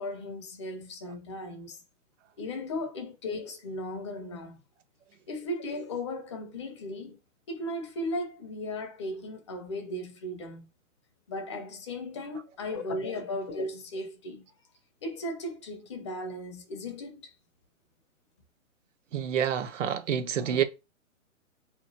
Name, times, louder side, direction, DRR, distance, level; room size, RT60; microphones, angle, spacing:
voice 1, 0.0-1.8 2.4-4.6 5.3-7.2 7.5-10.7 11.3-14.5 15.0-17.3, left 1 dB, 20° left, 0.5 m, -36 dB
voice 2, 19.1-20.6, right 9 dB, 60° right, 0.7 m, -28 dB
4.2 x 3.0 x 2.7 m
hypercardioid pair, 150°, 41 cm